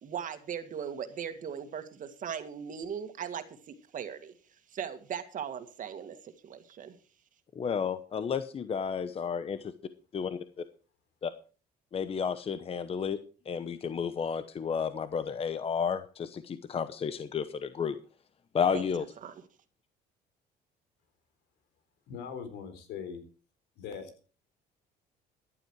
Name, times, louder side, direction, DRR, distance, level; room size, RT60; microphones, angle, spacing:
voice 1, 0.0-3.4 3.9-4.3 4.7-7.0 18.7-18.8 19.2-19.3, right 8 dB, 50° right, 9 dB, 2.1 m, -38 dB
voice 2, 7.6-9.7 10.1-10.6 11.2-11.3 11.9-13.2 13.5-18.0 18.5-19.0, left 6 dB, 35° left, 12 dB, 0.9 m, -32 dB
voice 3, 22.1-23.2 23.8-24.1, left 7 dB, 85° left, 9 dB, 3.8 m, -40 dB
14.5 x 11.0 x 4.8 m, 0.38 s
cardioid pair, 110°, 17 cm